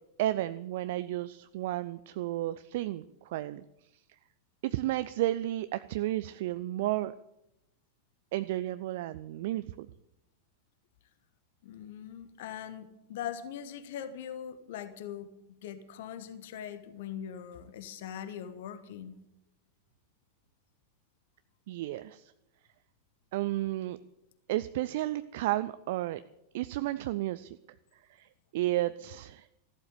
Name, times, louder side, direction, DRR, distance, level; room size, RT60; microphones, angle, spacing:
voice 1, 0.2-3.6 4.6-7.1 8.3-9.9 21.7-22.3 23.3-24.0 24.5-26.2 26.5-27.6 28.1-29.5, right 15 dB, 50° right, 14 dB, 0.5 m, -32 dB
voice 2, 11.6-19.2, left 9 dB, 55° left, 12 dB, 1.2 m, -41 dB
15.0 x 12.0 x 7.0 m, 0.85 s
figure-of-eight pair, 90°, 0 cm